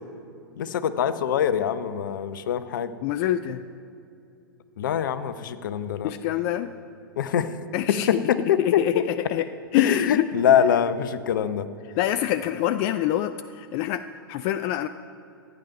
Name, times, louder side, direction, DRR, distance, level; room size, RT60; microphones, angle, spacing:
voice 1, 0.6-2.9 4.8-6.1 7.2-7.6 7.9-9.0 9.8-11.7, left 8 dB, 55° left, 12 dB, 0.7 m, -24 dB
voice 2, 3.0-3.6 6.0-6.7 7.7-8.2 8.6-9.5 9.7-10.3 12.0-14.9, left 12 dB, 35° left, 10 dB, 0.3 m, -26 dB
14.0 x 9.2 x 5.3 m, 2.5 s
figure-of-eight pair, 105°, 12 cm